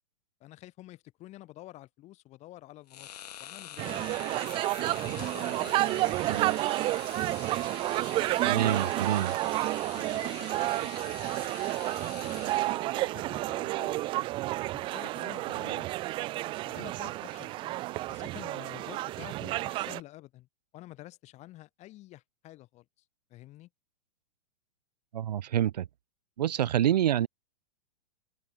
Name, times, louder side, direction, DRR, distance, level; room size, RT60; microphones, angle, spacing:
voice 1, 0.4-3.1 3.4-4.3 5.0-6.4 8.2-9.5 9.9-10.9 11.4-14.1 14.7-15.9 16.6-17.8 18.1-20.5 20.7-22.9 23.3-23.7, left 16 dB, 35° left, 4.4 m, -49 dB
sound 1, 2.9-13.0, left 11 dB, 75° left, 0.8 m, -46 dB
sound 2, 3.8-20.0, right 18 dB, 25° right, 0.4 m, -31 dB
voice 2, 8.4-9.3 25.1-25.8 26.4-27.3, right 11 dB, 85° right, 0.5 m, -27 dB
open air
hypercardioid pair, 125°, 20 cm